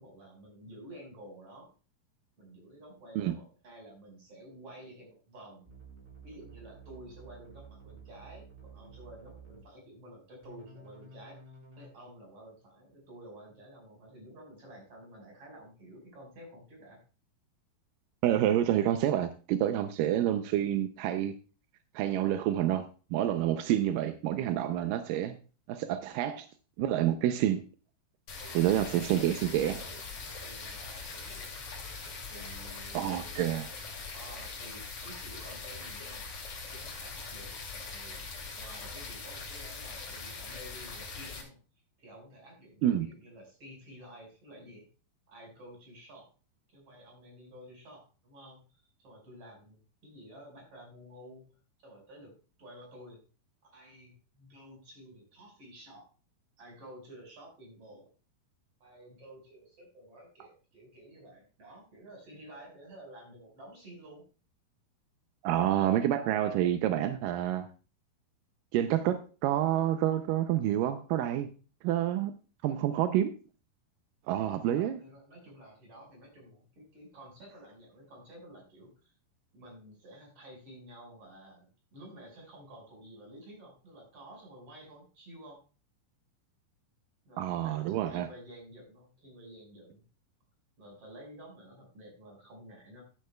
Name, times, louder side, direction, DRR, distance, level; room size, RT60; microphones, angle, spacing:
voice 1, 0.0-1.7 2.4-5.7 6.2-11.4 11.7-17.0 28.4-31.6 32.3-33.4 34.1-36.3 36.7-38.2 38.6-41.6 42.0-44.9 45.3-46.3 46.7-51.5 51.8-53.2 53.6-56.1 56.6-58.1 58.8-64.2 74.7-79.1 79.5-85.6 87.2-90.0 90.8-93.0, right 1 dB, 35° right, 0 dB, 6.1 m, -51 dB
sound 1, 5.6-9.6 10.4-11.9, right 4 dB, 15° right, 4.0 m, -52 dB
voice 2, 18.2-21.3 22.0-25.4 25.7-26.5 26.8-27.6 28.5-29.8 32.9-33.7 42.8-43.1 65.4-67.7 68.7-71.5 71.8-72.3 72.6-73.3 74.3-75.0 87.4-88.3, right 11 dB, 80° right, 8 dB, 2.0 m, -28 dB
sound 2, 28.3-41.4, left 4 dB, 50° left, 3.6 m, -42 dB
14.5 x 9.5 x 2.3 m, 0.35 s
omnidirectional pair, 4.5 m